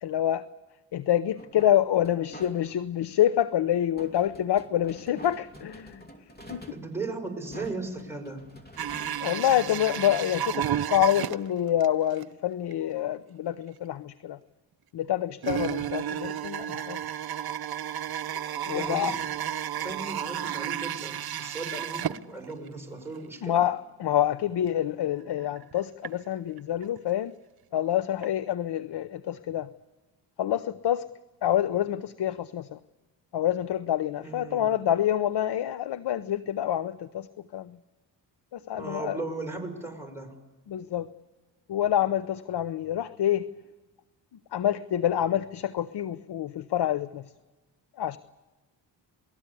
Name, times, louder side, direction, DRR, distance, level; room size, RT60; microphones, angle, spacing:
voice 1, 0.0-0.4 0.9-6.0 6.5-6.6 9.2-14.4 14.9-17.0 18.7-19.1 23.4-27.3 27.7-29.7 30.4-31.0 31.4-32.8 33.3-37.3 37.5-37.8 38.5-39.2 40.7-41.1 41.7-43.5 44.5-47.3 48.0-48.2, left 11 dB, 65° left, 15 dB, 0.8 m, -27 dB
sound 1, 1.4-2.9 4.0-11.1, equal, 20° left, 2.8 m, -48 dB
voice 2, 6.7-8.5 18.7-19.2 19.8-23.6 34.2-34.7 38.7-40.3, right 3 dB, 5° right, 1 dB, 6.0 m, -37 dB
sound 2, 8.8-11.9 12.2-12.3 12.7-12.8 13.5-13.6 15.4-22.8 23.1-23.2 23.9-24.0 24.5-24.7 25.1-26.1 26.6-27.0 28.2-28.3 28.5-28.6, right 10 dB, 55° right, 0.8 m, -32 dB
28.0 x 19.5 x 8.3 m, 1.2 s
cardioid pair, 80°, 45 cm